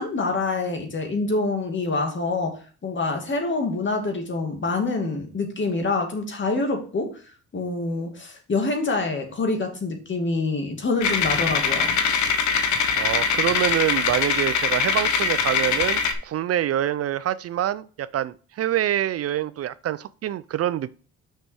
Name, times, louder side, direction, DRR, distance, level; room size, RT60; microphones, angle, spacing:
voice 1, 0.0-7.2 7.5-12.0, left 3 dB, 40° left, 2.4 m, -26 dB
sound 1, 11.0-16.1, left 6 dB, 70° left, 1.2 m, -22 dB
voice 2, 13.0-20.9, right 12 dB, 55° right, 0.4 m, -26 dB
6.4 x 5.5 x 4.7 m
cardioid pair, 90°, 30 cm